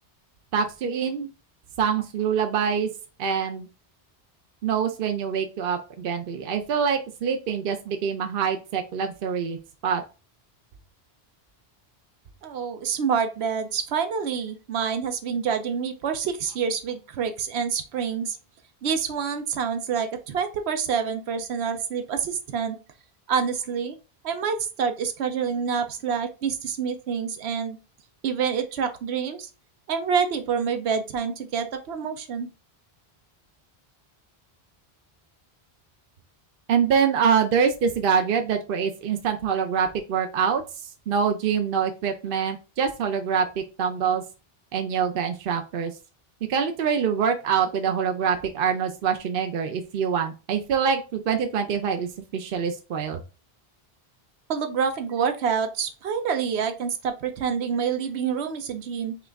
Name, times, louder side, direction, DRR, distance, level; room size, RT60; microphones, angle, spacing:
voice 1, 0.5-1.3 1.8-2.9 3.2-3.7 4.6-9.6 9.8-10.0 36.7-43.5 43.8-44.2 44.7-45.9 46.5-53.2, right 7 dB, 65° right, 5 dB, 0.7 m, -25 dB
voice 2, 12.4-18.4 18.8-22.8 23.3-24.0 24.2-27.8 28.2-29.5 29.9-32.5 54.5-59.2, right 6 dB, 90° right, 8 dB, 0.9 m, -27 dB
5.7 x 2.5 x 3.4 m, 0.31 s
omnidirectional pair, 1.1 m